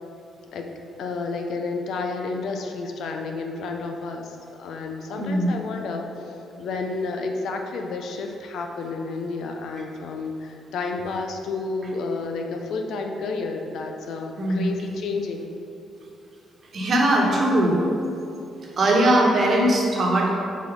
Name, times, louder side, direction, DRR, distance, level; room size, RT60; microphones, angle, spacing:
voice 1, 1.0-6.1 6.6-15.5, left 3 dB, 75° left, 3 dB, 0.6 m, -31 dB
voice 2, 5.1-5.6 14.4-14.7 16.7-17.8 18.8-20.3, right 1 dB, 50° right, -2 dB, 1.3 m, -20 dB
5.0 x 4.3 x 5.2 m, 2.7 s
cardioid pair, 90°, 0 cm